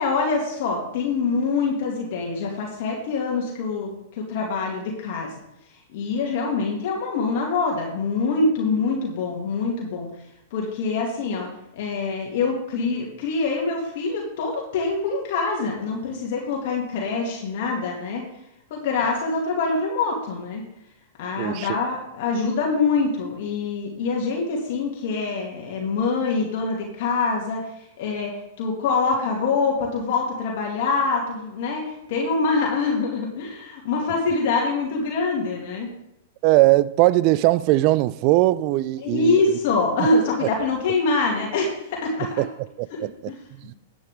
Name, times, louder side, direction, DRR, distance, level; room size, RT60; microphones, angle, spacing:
voice 1, 0.0-5.3 5.9-10.1 10.5-11.5 11.7-18.2 18.7-20.6 21.2-35.9 39.0-42.4 43.3-43.4, left 4 dB, 60° left, 2.5 m, -25 dB
voice 2, 21.4-21.8 36.4-39.6 40.0-40.1 40.4-40.5 42.4-43.3 43.6-43.7, right 18 dB, 45° right, 0.5 m, -20 dB
11.0 x 8.9 x 3.7 m
hypercardioid pair, 115°, 0 cm